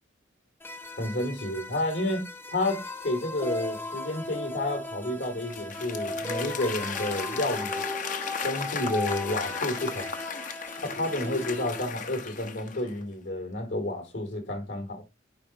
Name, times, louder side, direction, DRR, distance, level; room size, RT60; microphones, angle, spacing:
sound 1, 0.6-11.9, left 2 dB, 10° left, 0.8 m, -37 dB
voice 1, 1.0-7.8 8.4-10.1 10.8-15.0, left 1 dB, 70° left, 3.1 m, -30 dB
Applause / Crowd, 5.2-13.0, left 5 dB, 40° left, 0.9 m, -36 dB
8.5 x 5.7 x 3.0 m
head